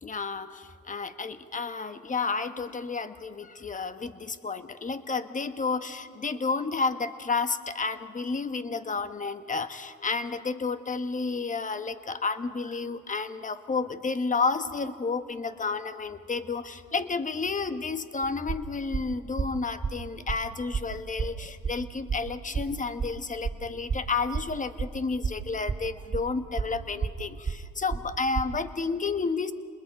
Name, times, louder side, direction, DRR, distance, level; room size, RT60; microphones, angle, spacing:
voice 1, 0.0-29.5, left 4 dB, 20° left, 10 dB, 1.3 m, -31 dB
sound 1, 18.2-28.6, right 5 dB, 25° right, 3.4 m, -32 dB
29.5 x 21.0 x 5.2 m, 2.1 s
supercardioid pair, 80°, 36 cm